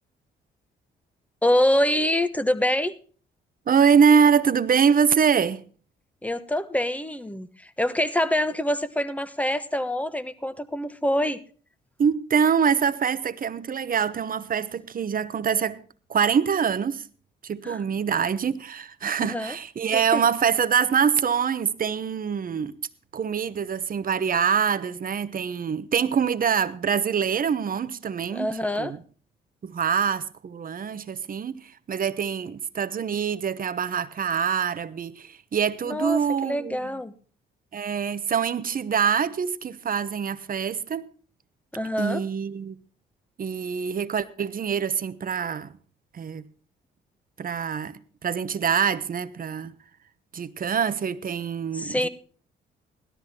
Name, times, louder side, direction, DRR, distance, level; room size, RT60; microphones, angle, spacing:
voice 1, 1.4-3.0 6.2-11.4 17.6-17.8 19.2-19.6 19.9-20.3 28.3-29.0 35.8-37.1 41.7-42.2 51.7-52.1, left 1 dB, 5° left, 1.2 m, -25 dB
voice 2, 3.7-5.6 12.0-15.8 16.1-17.1 17.4-22.8 23.1-28.5 28.8-29.0 29.6-36.9 37.7-41.1 42.0-42.8 43.4-45.7 46.1-46.4 47.4-49.7 50.3-52.1, right 7 dB, 45° right, 0.9 m, -24 dB
17.0 x 13.0 x 2.9 m
supercardioid pair, 55°, 20 cm